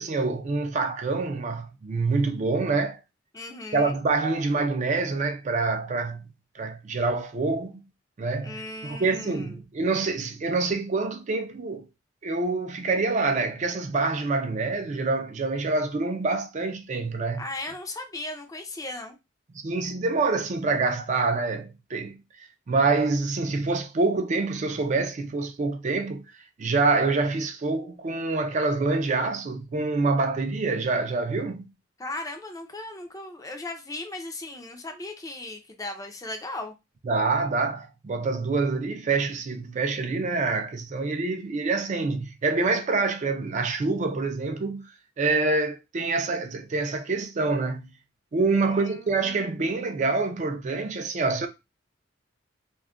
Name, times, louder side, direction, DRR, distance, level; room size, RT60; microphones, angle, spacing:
voice 1, 0.0-3.0 3.7-7.8 8.2-11.9 12.2-17.4 19.6-26.2 26.6-31.6 37.1-44.8 45.2-47.9 48.3-51.5, right 3 dB, 40° right, 0.4 m, -26 dB
voice 2, 3.3-4.0 8.4-9.6 17.4-19.2 32.0-36.7 48.6-49.7, left 2 dB, 20° left, 0.4 m, -37 dB
2.3 x 2.1 x 3.6 m
head